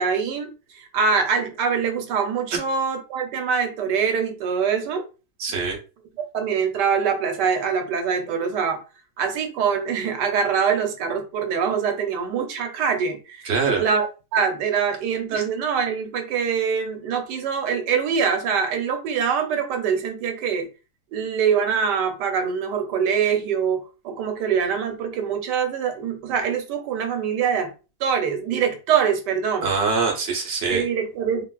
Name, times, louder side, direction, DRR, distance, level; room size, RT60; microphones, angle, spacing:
voice 1, 0.0-5.0 6.3-8.8 9.2-13.5 13.8-20.7 21.1-27.7 28.0-29.7 30.7-31.5, right 6 dB, 80° right, 1.3 m, -24 dB
voice 2, 5.4-5.8 13.4-13.8 29.6-30.8, right 4 dB, 50° right, 0.9 m, -23 dB
3.4 x 2.4 x 2.3 m
omnidirectional pair, 1.8 m